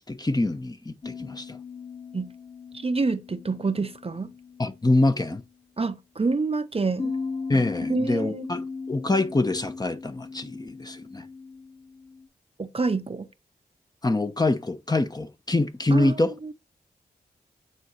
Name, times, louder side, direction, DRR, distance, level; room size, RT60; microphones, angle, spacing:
voice 1, 0.0-1.6 4.6-5.4 7.5-11.2 14.0-16.3, left 2 dB, 25° left, 1.0 m, -25 dB
sound 1, 1.0-5.6 7.0-12.3, left 4 dB, 40° left, 2.3 m, -37 dB
voice 2, 2.7-4.3 5.8-7.1 7.9-8.5 12.6-13.3 15.9-16.5, right 3 dB, 35° right, 0.7 m, -27 dB
9.3 x 4.0 x 3.1 m
cardioid pair, 45°, 17 cm